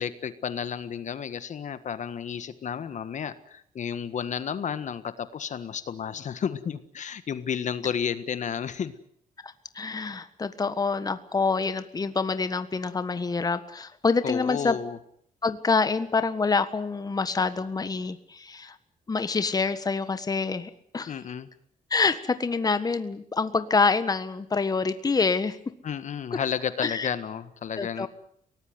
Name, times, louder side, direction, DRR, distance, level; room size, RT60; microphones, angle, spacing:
voice 1, 0.0-8.9 14.2-15.0 21.1-21.5 25.8-28.1, left 7 dB, 55° left, 12 dB, 1.6 m, -32 dB
voice 2, 9.4-14.8 15.4-18.8 19.1-21.1 21.9-25.6 26.8-27.1 27.8-28.1, left 4 dB, 25° left, 11 dB, 1.5 m, -26 dB
23.5 x 18.5 x 9.5 m, 0.66 s
cardioid pair, 110°, 15 cm